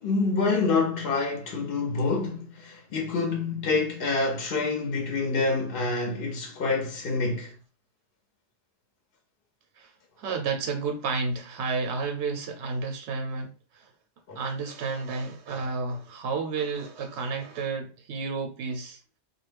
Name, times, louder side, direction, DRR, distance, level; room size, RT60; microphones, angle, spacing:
voice 1, 0.0-7.5 14.3-14.4, left 3 dB, 60° left, 0.8 m, -27 dB
voice 2, 10.2-13.9 14.4-19.0, right 4 dB, 85° right, 0.9 m, -31 dB
2.3 x 2.0 x 3.2 m
omnidirectional pair, 1.1 m